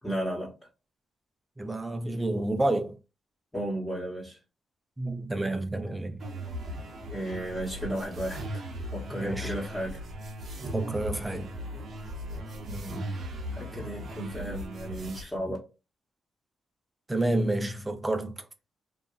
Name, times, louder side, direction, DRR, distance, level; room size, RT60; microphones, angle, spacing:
voice 1, 0.0-0.5 3.5-4.4 7.1-8.4 8.9-10.0 13.5-15.6, right 1 dB, 5° left, 1.1 m, -34 dB
voice 2, 1.6-3.0 5.0-6.2 9.1-9.5 10.6-11.5 12.7-13.2 15.5-15.6 17.1-18.5, right 2 dB, 15° right, 0.5 m, -30 dB
sound 1, 6.2-15.2, equal, 60° right, 0.8 m, -38 dB
2.7 x 2.5 x 2.3 m
cardioid pair, 85°, 0 cm